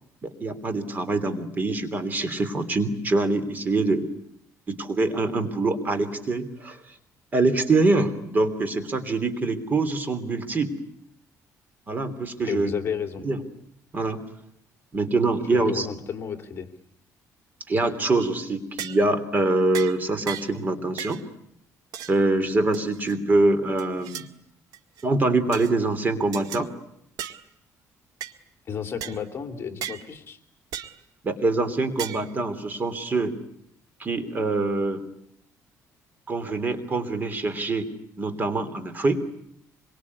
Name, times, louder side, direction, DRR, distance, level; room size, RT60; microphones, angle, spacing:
voice 1, 0.2-4.0 4.7-6.8 7.3-10.7 11.9-12.7 13.2-13.4 13.9-14.2 14.9-15.9 17.7-21.2 22.1-24.2 25.0-26.7 31.2-33.3 34.0-35.0 36.3-37.9 38.2-39.2, right 2 dB, 30° right, 10 dB, 3.2 m, -24 dB
voice 2, 12.4-13.2 15.5-16.7 28.7-30.4, left 7 dB, 35° left, 7 dB, 2.9 m, -32 dB
sound 1, 18.2-18.4 18.8-19.1 19.7-20.0 20.3-20.6 21.0-21.2 21.9-22.2 22.7-23.2 23.8-24.3 24.7-25.0 25.5-25.7 26.3-26.6 27.2-27.4 28.2-28.3 29.0-29.2 29.8-30.0 30.7-31.0 32.0-32.3, right 10 dB, 85° right, 1.9 m, -36 dB
26.0 x 23.5 x 9.7 m, 0.73 s
cardioid pair, 150°, 6 cm